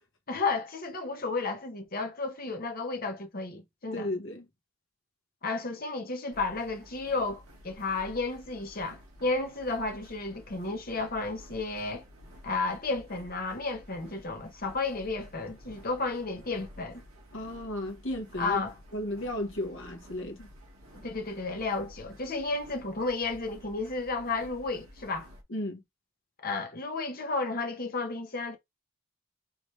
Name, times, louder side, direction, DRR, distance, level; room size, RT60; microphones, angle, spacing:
voice 1, 0.3-4.1 5.4-12.0 12.4-17.0 18.4-18.7 20.9-25.3 26.4-28.6, left 3 dB, 40° left, 1.1 m, -32 dB
voice 2, 3.9-4.4 17.3-18.6 18.9-20.5 25.5-25.8, left 1 dB, 55° left, 1.5 m, -34 dB
sound 1, 6.3-25.4, equal, 70° right, 1.8 m, -52 dB
4.8 x 3.1 x 3.3 m
head